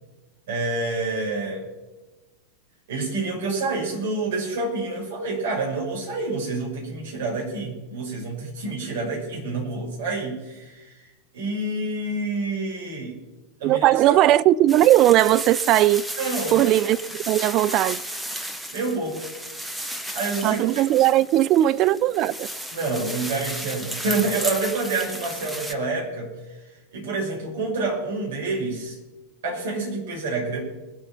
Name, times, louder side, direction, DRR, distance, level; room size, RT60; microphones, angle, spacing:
voice 1, 0.5-1.6 2.9-11.1 11.3-13.2 13.6-14.2 16.2-16.7 18.7-19.2 20.1-20.6 22.7-26.3 26.9-29.0 29.4-30.6, right 3 dB, 55° right, 5.9 m, -28 dB
voice 2, 13.6-16.0 16.5-17.0 17.3-18.0 20.4-22.5, right 14 dB, 35° right, 0.4 m, -18 dB
sound 1, 14.7-25.7, equal, ahead, 1.2 m, -34 dB
21.5 x 8.0 x 5.7 m
figure-of-eight pair, 90°, 0 cm